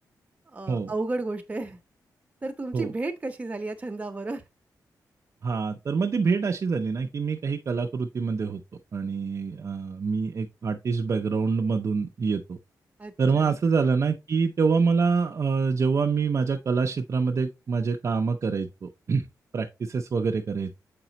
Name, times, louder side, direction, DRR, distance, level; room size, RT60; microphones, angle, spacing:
voice 1, 0.5-1.8 2.4-4.4 13.0-13.5, right 2 dB, 20° right, 1.0 m, -32 dB
voice 2, 5.4-8.6 8.9-12.6 13.2-19.3 19.5-20.8, right 5 dB, 45° right, 0.6 m, -26 dB
6.7 x 5.0 x 2.8 m
wide cardioid pair, 125°, 7 cm